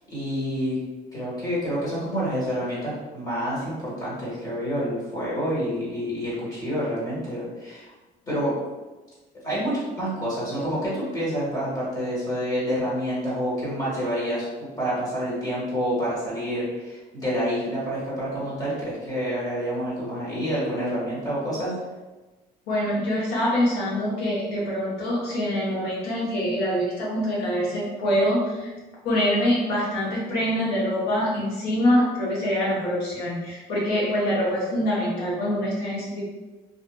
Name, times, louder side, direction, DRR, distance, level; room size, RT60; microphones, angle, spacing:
voice 1, 0.1-0.8 1.1-7.9 8.3-8.5 9.4-21.7, equal, 20° left, -8 dB, 1.4 m, -28 dB
voice 2, 22.7-28.7 29.0-36.2, equal, 80° left, -5 dB, 1.0 m, -24 dB
2.5 x 2.5 x 2.2 m, 1.2 s
cardioid pair, 110°, 17 cm